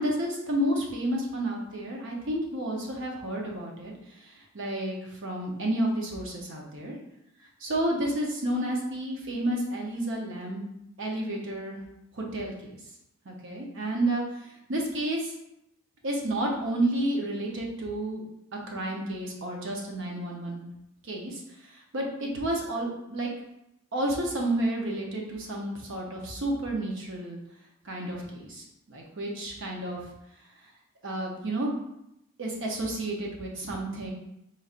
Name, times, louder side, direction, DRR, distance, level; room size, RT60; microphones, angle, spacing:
voice 1, 0.0-3.9 4.2-6.9 7.6-10.6 11.0-11.8 12.1-12.8 13.3-15.3 16.0-18.2 18.7-20.6 21.0-21.4 21.9-23.3 23.9-27.4 27.8-30.0 31.0-31.7 32.4-34.1, right 1 dB, 60° right, -1 dB, 0.8 m, -31 dB
4.2 x 3.2 x 2.5 m, 0.84 s
head